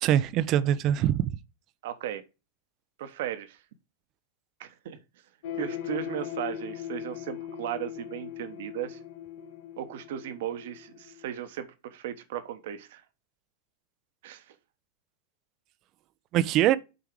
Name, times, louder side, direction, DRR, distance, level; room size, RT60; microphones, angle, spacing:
voice 1, 0.0-1.4 16.3-16.8, right 11 dB, 35° right, 0.5 m, -23 dB
voice 2, 1.8-2.2 3.0-3.6 4.6-5.0 5.5-9.0 9.8-13.0 14.2-14.5, right 11 dB, 55° right, 1.1 m, -36 dB
sound 1, 5.4-11.2, left 9 dB, 50° left, 1.3 m, -39 dB
8.0 x 4.7 x 4.8 m
figure-of-eight pair, 90°, 0 cm